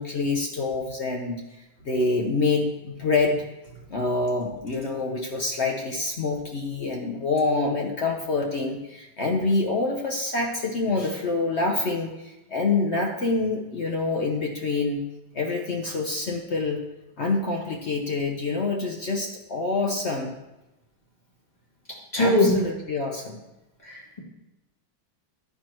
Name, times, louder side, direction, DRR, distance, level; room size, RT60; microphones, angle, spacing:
voice 1, 0.0-1.4 1.8-3.4 3.9-15.0 15.3-16.8 17.2-20.4 22.2-23.4, left 3 dB, 65° left, 2 dB, 0.6 m, -26 dB
voice 2, 22.1-22.6 23.8-24.2, left 1 dB, 20° left, -4 dB, 2.2 m, -21 dB
12.0 x 4.6 x 4.5 m, 0.98 s
omnidirectional pair, 2.1 m